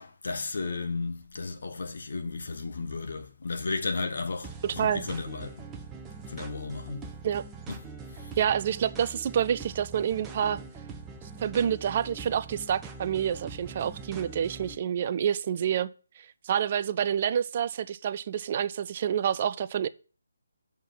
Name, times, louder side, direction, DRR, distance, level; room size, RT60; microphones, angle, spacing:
voice 1, 0.0-5.6 6.3-7.1 7.7-7.8 8.2-8.3, left 3 dB, 55° left, 1.2 m, -34 dB
sound 1, 4.4-14.7, right 4 dB, 10° right, 0.7 m, -43 dB
voice 2, 4.6-5.1 7.2-7.4 8.4-10.6 11.4-15.9 16.2-19.9, right 9 dB, 35° right, 0.4 m, -28 dB
7.1 x 5.9 x 4.4 m
figure-of-eight pair, 145°, 0 cm